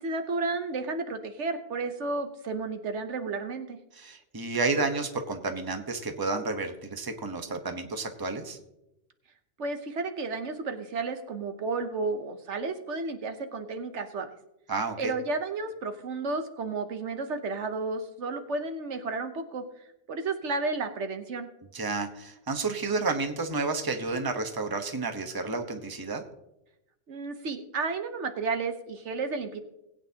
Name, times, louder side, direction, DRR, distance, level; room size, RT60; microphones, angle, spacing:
voice 1, 0.0-3.8 9.6-14.3 15.0-19.6 20.1-21.5 27.1-29.6, right 3 dB, 70° right, 7 dB, 1.2 m, -32 dB
voice 2, 3.9-8.6 14.7-15.1 21.7-26.2, right 3 dB, 20° right, 6 dB, 1.0 m, -31 dB
20.0 x 8.9 x 2.8 m, 0.88 s
omnidirectional pair, 1.2 m